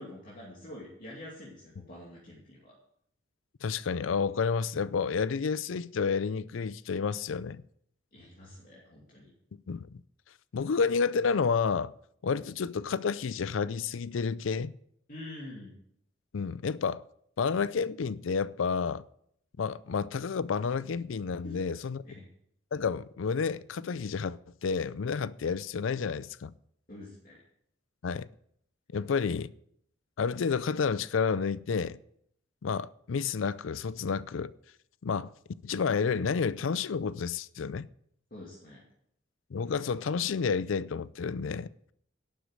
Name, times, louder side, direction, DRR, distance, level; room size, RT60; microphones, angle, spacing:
voice 1, 0.0-2.7 8.1-9.3 15.1-15.7 21.4-21.7 22.0-22.3 26.9-27.4 38.3-38.8, left 1 dB, 45° left, 2.6 m, -46 dB
voice 2, 3.6-7.6 9.7-10.0 10.5-11.9 12.2-14.7 16.3-17.0 17.4-19.0 19.6-22.0 22.7-26.5 28.0-28.3 28.9-29.5 30.2-32.0 32.6-34.5 35.0-35.3 35.6-37.9 39.5-41.7, left 5 dB, 80° left, 0.4 m, -30 dB
11.5 x 7.9 x 6.5 m
head